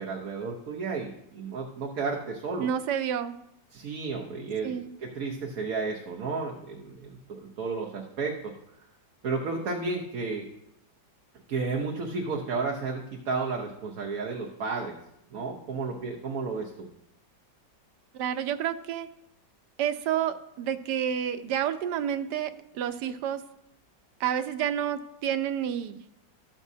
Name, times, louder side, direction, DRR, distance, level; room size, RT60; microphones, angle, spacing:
voice 1, 0.0-2.7 3.7-8.5 9.2-10.4 11.5-14.9 15.3-16.7, right 4 dB, 55° right, -1 dB, 1.2 m, -32 dB
voice 2, 2.6-3.4 4.6-4.9 18.1-19.1 19.8-23.4 24.2-26.0, right 9 dB, 75° right, 10 dB, 1.1 m, -29 dB
13.5 x 7.3 x 2.7 m, 0.79 s
omnidirectional pair, 2.1 m